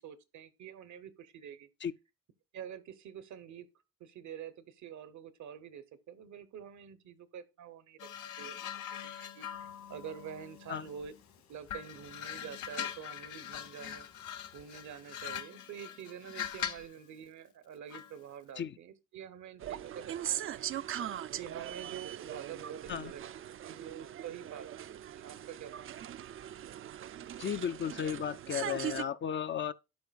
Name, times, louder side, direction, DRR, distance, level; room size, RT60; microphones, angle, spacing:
voice 1, 0.0-1.7 2.5-3.7 4.0-11.1 11.5-14.1 14.5-20.7 21.3-24.8 25.1-25.9, right 8 dB, 70° right, 0.9 m, -47 dB
sound 1, 8.0-11.2 11.7-17.0 17.9-18.2, left 9 dB, 85° left, 0.8 m, -42 dB
sound 2, 9.5-15.1, left 7 dB, 65° left, 1.9 m, -64 dB
sound 3, 19.6-29.0, right 11 dB, 45° right, 0.4 m, -40 dB
voice 2, 27.4-29.7, left 8 dB, 40° left, 0.4 m, -34 dB
11.5 x 5.0 x 2.4 m
cardioid pair, 90°, 30 cm